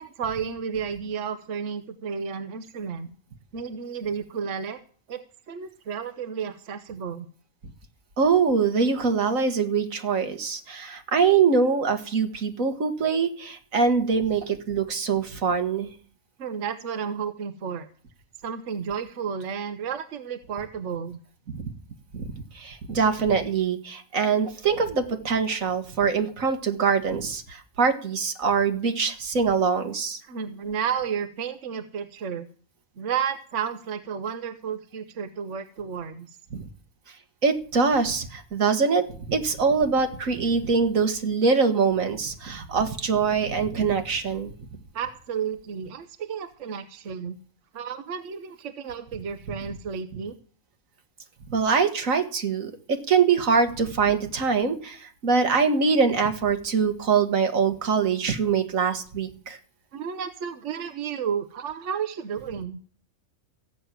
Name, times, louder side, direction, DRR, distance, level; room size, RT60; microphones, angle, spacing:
voice 1, 0.0-3.1 3.5-4.8 5.1-7.3 16.4-17.9 18.4-21.2 30.2-32.5 33.0-36.4 44.9-47.4 47.7-50.4 59.9-62.8, right 7 dB, 70° right, 9 dB, 1.2 m, -32 dB
voice 2, 8.2-15.9 21.5-21.7 22.1-22.2 22.6-30.2 36.5-36.6 37.4-44.5 51.5-55.0 55.2-59.6, right 5 dB, 90° right, 7 dB, 1.9 m, -23 dB
15.0 x 6.4 x 9.1 m, 0.43 s
omnidirectional pair, 1.4 m